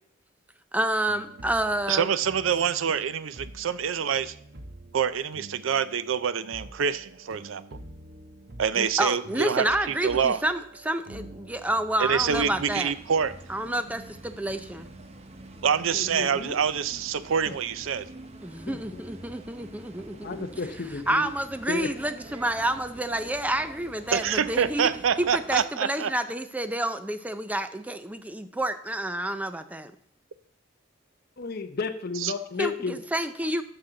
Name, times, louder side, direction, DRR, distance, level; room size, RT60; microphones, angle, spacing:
voice 1, 0.7-2.1 8.8-12.9 13.5-14.9 18.4-20.5 21.1-24.9 25.2-29.9 32.6-33.6, right 1 dB, 10° right, 10 dB, 0.5 m, -29 dB
sound 1, 1.1-12.7, right 1 dB, 55° right, 1.1 m, -47 dB
voice 2, 1.9-4.3 4.9-7.6 8.6-10.4 12.0-13.3 15.6-18.1 24.1-26.1 32.2-32.3, right 7 dB, 80° right, 15 dB, 0.5 m, -26 dB
sound 2, 12.0-25.6, right 2 dB, 35° right, 0.9 m, -46 dB
voice 3, 15.9-16.6 17.5-17.6 18.7-19.0 20.1-21.3 21.7-21.9 31.4-33.0, left 4 dB, 50° left, 7 dB, 0.7 m, -33 dB
11.5 x 6.0 x 3.9 m, 0.66 s
head